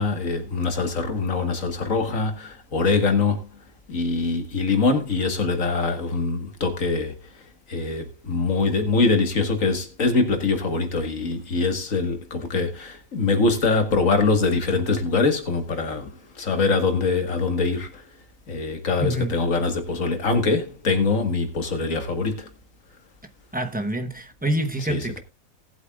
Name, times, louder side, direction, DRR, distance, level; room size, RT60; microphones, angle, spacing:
voice 1, 0.0-3.5 3.9-18.1 18.5-22.5 24.9-25.2, left 3 dB, 70° left, 2.1 m, -23 dB
voice 2, 19.0-19.3 23.5-25.2, right 1 dB, 5° right, 0.9 m, -26 dB
18.5 x 8.2 x 2.4 m
omnidirectional pair, 1.4 m